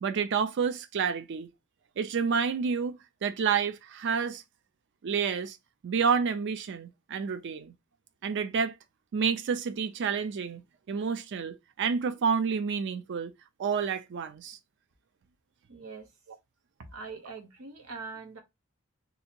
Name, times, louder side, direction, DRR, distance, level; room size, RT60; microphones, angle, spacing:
voice 1, 0.0-1.5 2.0-4.4 5.0-5.6 5.8-7.7 8.2-8.7 9.1-10.6 10.9-13.3 13.6-14.6, right 6 dB, 55° right, 0.4 m, -29 dB
voice 2, 15.7-16.1 16.9-18.4, right 4 dB, 85° right, 0.8 m, -42 dB
2.7 x 2.7 x 4.3 m
head